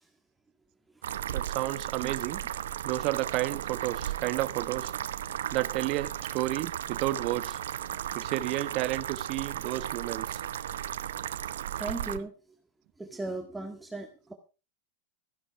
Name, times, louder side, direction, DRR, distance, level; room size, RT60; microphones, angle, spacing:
sound 1, 1.0-12.2, right 11 dB, 85° right, 0.9 m, -35 dB
voice 1, 1.3-2.4 2.8-4.9 5.5-7.6 8.1-10.4 12.1-12.2, right 17 dB, 50° right, 1.2 m, -31 dB
voice 2, 11.7-12.3 13.0-14.3, right 3 dB, 5° right, 1.8 m, -37 dB
14.5 x 11.0 x 4.7 m
supercardioid pair, 130°, 0 cm